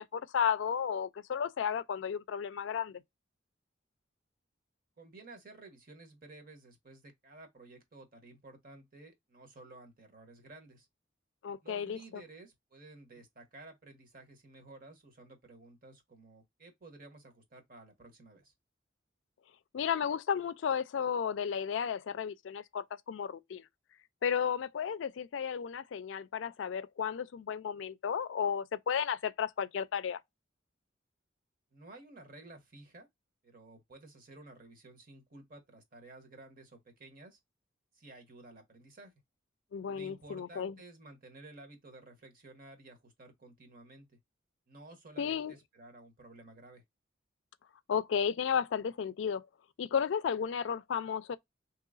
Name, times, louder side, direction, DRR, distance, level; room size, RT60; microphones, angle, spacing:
voice 1, 0.0-3.0 11.4-12.2 19.7-23.6 24.2-30.2 39.7-40.8 45.2-45.5 47.9-49.5 49.8-51.4, left 7 dB, 75° left, 0.4 m, -33 dB
voice 2, 5.0-10.9 11.6-18.5 31.7-33.1 33.4-37.4 37.9-39.1 39.9-44.2 44.7-46.8, right 2 dB, 50° right, 1.1 m, -54 dB
3.8 x 3.0 x 2.4 m
head